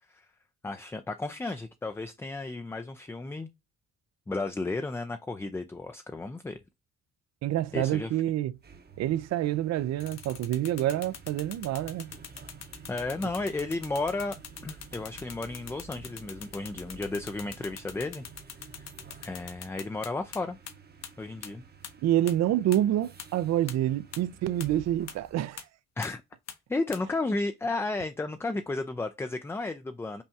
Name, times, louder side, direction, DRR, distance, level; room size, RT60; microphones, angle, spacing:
voice 1, 0.6-3.5 4.3-6.6 7.7-8.1 12.9-14.4 14.6-18.2 18.7-18.8 19.2-20.6 21.2-21.6 26.0-26.2 26.7-30.2, left 2 dB, 10° left, 0.3 m, -33 dB
voice 2, 7.4-8.6 9.0-12.1 22.0-25.6, right 12 dB, 60° right, 0.4 m, -27 dB
sound 1, 8.5-25.6, right 5 dB, 35° right, 0.8 m, -51 dB
sound 2, 10.0-20.4 20.7-20.8 21.0-21.1 21.4-21.5 21.8-21.9 22.3-22.4 22.7-22.8 23.2-23.3 23.7-23.8 24.1-24.2 24.6-24.7 25.1-25.2 25.6-25.7 26.0-26.1 26.5-26.6 26.9-27.0, left 8 dB, 60° left, 0.9 m, -42 dB
5.6 x 2.2 x 2.6 m
cardioid pair, 90°, 30 cm